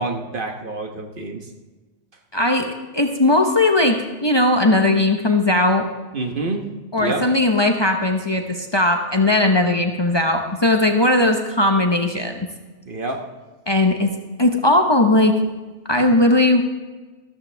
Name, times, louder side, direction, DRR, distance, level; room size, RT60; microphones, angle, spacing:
voice 1, 0.0-1.5 6.1-6.7 7.0-7.3 12.9-13.3, right 2 dB, 55° right, 4 dB, 1.4 m, -27 dB
voice 2, 2.3-5.8 6.9-12.5 13.7-14.1 14.4-15.4 15.9-16.6, left 2 dB, 25° left, 4 dB, 0.9 m, -18 dB
13.5 x 13.0 x 3.4 m, 1.3 s
omnidirectional pair, 1.1 m